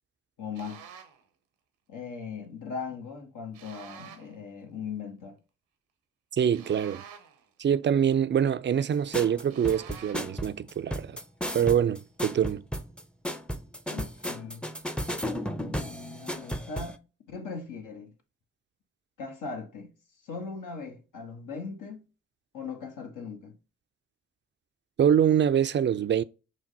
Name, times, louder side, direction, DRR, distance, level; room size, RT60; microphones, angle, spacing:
voice 1, 0.4-0.8 1.9-5.4 13.9-14.6 15.6-17.0 17.3-18.1 19.2-19.9 20.2-22.0 22.5-23.6, left 5 dB, 65° left, 1.4 m, -39 dB
sound 1, 0.5-1.2 3.5-4.4 6.5-7.5 9.5-10.4, right 8 dB, 85° right, 0.8 m, -48 dB
voice 2, 6.3-7.0 7.6-11.2 11.5-12.6 25.0-26.2, right 8 dB, 35° right, 0.4 m, -24 dB
sound 2, 9.1-17.0, equal, 5° left, 0.6 m, -34 dB
6.1 x 2.1 x 4.0 m
hypercardioid pair, 40°, 33 cm